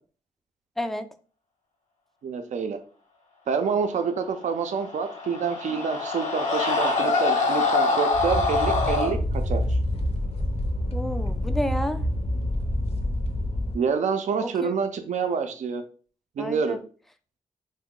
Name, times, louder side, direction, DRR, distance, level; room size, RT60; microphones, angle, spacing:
voice 1, 0.8-1.1 10.9-12.1 14.4-14.7 16.4-16.8, equal, ahead, 9 dB, 0.4 m, -30 dB
voice 2, 2.2-2.8 3.5-9.6 13.7-15.8 16.4-16.8, right 6 dB, 65° right, 7 dB, 0.4 m, -27 dB
Screaming, 4.7-9.1, left 3 dB, 70° left, 1.0 m, -24 dB
sound 1, 8.1-13.8, left 1 dB, 50° left, 0.6 m, -27 dB
2.8 x 2.1 x 3.6 m, 0.40 s
cardioid pair, 50°, 13 cm